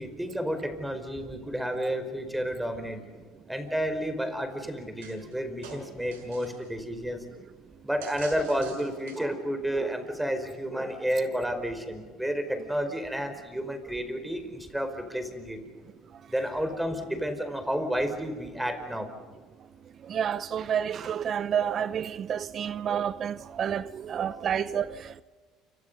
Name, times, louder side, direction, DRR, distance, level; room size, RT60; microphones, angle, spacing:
voice 1, 0.0-3.0 3.5-7.2 7.8-15.6 16.3-19.1, equal, 5° right, 4.9 m, -31 dB
sound 1, 5.0-5.4 5.6-6.7 8.0-9.4, right 4 dB, 90° right, 5.8 m, -45 dB
voice 2, 20.0-25.2, right 8 dB, 45° right, 0.7 m, -29 dB
29.0 x 26.0 x 5.5 m
hypercardioid pair, 75°, 0 cm